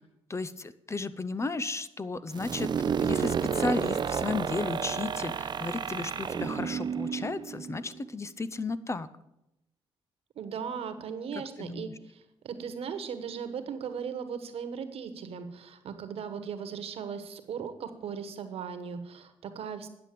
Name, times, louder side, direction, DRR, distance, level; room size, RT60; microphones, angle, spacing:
voice 1, 0.3-2.7 3.0-9.1 11.6-11.9, left 3 dB, 25° left, 15 dB, 0.6 m, -34 dB
sound 1, 2.3-8.0, right 7 dB, 45° right, 0.5 m, -31 dB
voice 2, 10.3-19.9, right 7 dB, 70° right, 9 dB, 1.3 m, -38 dB
10.0 x 6.8 x 7.5 m, 0.87 s
cardioid pair, 70°, 10 cm